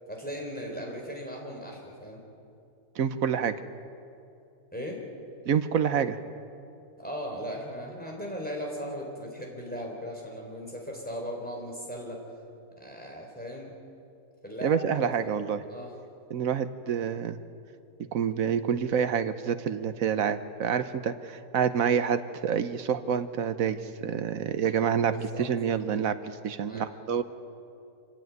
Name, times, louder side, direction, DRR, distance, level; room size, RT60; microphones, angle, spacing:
voice 1, 0.1-2.2 4.7-5.0 7.0-12.2 12.8-13.7 14.4-15.4 15.7-15.9 25.1-25.5 26.7-26.8, equal, 5° left, -1 dB, 3.9 m, -38 dB
voice 2, 3.0-3.6 5.5-6.2 14.6-15.6 16.3-17.4 18.1-27.2, right 7 dB, 60° right, 11 dB, 1.2 m, -27 dB
26.5 x 15.5 x 9.4 m, 2.7 s
omnidirectional pair, 1.7 m